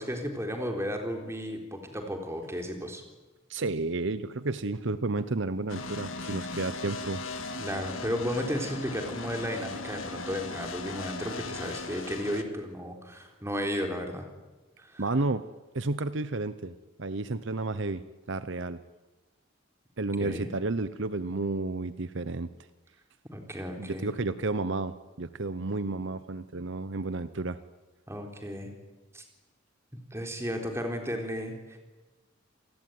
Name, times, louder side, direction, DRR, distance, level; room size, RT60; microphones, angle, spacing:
voice 1, 0.0-3.0 7.6-14.3 14.8-15.0 20.2-20.5 23.3-24.1 28.1-28.7 29.1-29.2 30.1-31.8, equal, 15° right, 3 dB, 3.9 m, -34 dB
voice 2, 3.5-7.2 15.0-15.4 15.7-16.7 17.0-18.0 18.3-18.8 20.0-22.5 23.8-27.6, right 3 dB, 60° right, 14 dB, 0.8 m, -31 dB
sound 1, 5.7-12.4, left 3 dB, 75° left, 2.3 m, -38 dB
28.0 x 20.0 x 9.5 m, 1.2 s
head